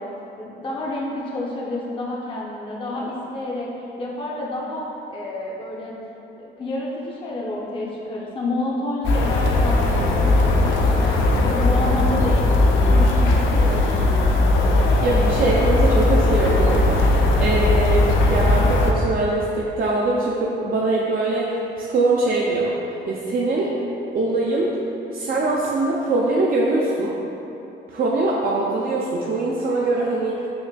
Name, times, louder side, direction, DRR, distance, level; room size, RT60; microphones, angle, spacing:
voice 1, 0.0-3.7 4.0-6.0 6.4-14.4, left 1 dB, 25° left, -4 dB, 0.5 m, -29 dB
sound 1, 9.0-18.9, left 2 dB, 80° left, 0.4 m, -18 dB
voice 2, 15.0-22.7 23.1-23.8 24.1-24.8 25.1-27.1 27.9-30.5, right 2 dB, 50° right, -4 dB, 0.4 m, -22 dB
5.7 x 2.5 x 2.2 m, 3.0 s
cardioid pair, 90°, 20 cm